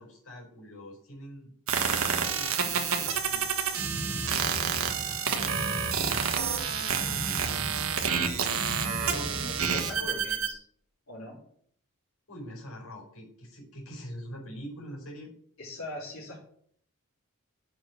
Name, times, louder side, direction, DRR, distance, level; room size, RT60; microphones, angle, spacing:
voice 1, 0.0-1.5 1.8-5.7 6.0-9.3 9.9-10.4 12.3-15.3, equal, 85° left, -2 dB, 4.8 m, -45 dB
sound 1, 1.7-10.5, right 7 dB, 70° right, 1.5 m, -29 dB
sound 2, 3.8-10.1, equal, ahead, 1.4 m, -38 dB
voice 2, 9.1-10.6 11.1-11.4 15.6-16.5, left 1 dB, 70° left, -7 dB, 4.1 m, -42 dB
7.9 x 6.4 x 7.7 m, 0.63 s
head